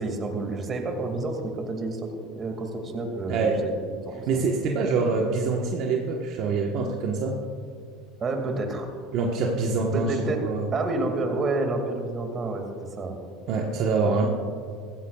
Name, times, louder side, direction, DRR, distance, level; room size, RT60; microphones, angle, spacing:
voice 1, 0.0-2.1 2.4-4.4 8.2-8.9 9.9-10.4 10.7-13.2, right 2 dB, 30° right, 4 dB, 2.2 m, -29 dB
voice 2, 4.3-7.4 9.1-10.1 10.4-10.7 13.5-14.3, right 4 dB, 55° right, 0 dB, 1.2 m, -25 dB
15.5 x 15.0 x 2.4 m, 2.3 s
supercardioid pair, 100°, 0 cm